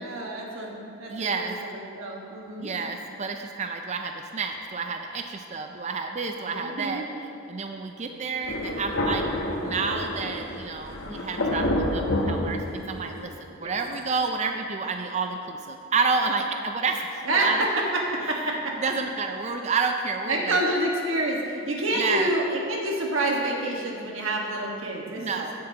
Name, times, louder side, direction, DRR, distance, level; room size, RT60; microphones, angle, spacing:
voice 1, 0.0-2.7 6.4-7.1 13.6-13.7 17.2-17.5 18.1-18.7 20.2-25.4, right 1 dB, 80° right, -1 dB, 1.6 m, -28 dB
voice 2, 1.1-1.6 2.6-7.0 7.5-9.3 9.6-17.6 18.8-20.6 22.0-22.3 25.2-25.5, right 4 dB, 35° right, 4 dB, 0.4 m, -29 dB
Thunder, 8.4-13.2, left 1 dB, 75° left, 1.0 m, -28 dB
15.5 x 7.4 x 2.9 m, 2.7 s
head